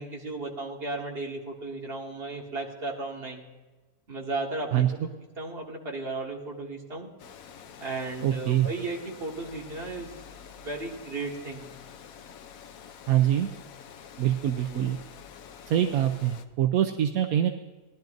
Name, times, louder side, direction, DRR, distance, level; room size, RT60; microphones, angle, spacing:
voice 1, 0.0-3.5 4.1-5.1 5.4-7.1 7.8-10.1 10.5-11.7 14.7-14.9, right 2 dB, 40° right, -1 dB, 1.9 m, -35 dB
voice 2, 4.7-5.1 8.2-8.7 13.1-13.5 14.2-15.0 15.7-17.5, right 11 dB, 75° right, 5 dB, 1.1 m, -24 dB
Water, 7.2-16.5, left 7 dB, 70° left, 1.1 m, -47 dB
18.5 x 12.0 x 2.6 m, 1.2 s
omnidirectional pair, 1.6 m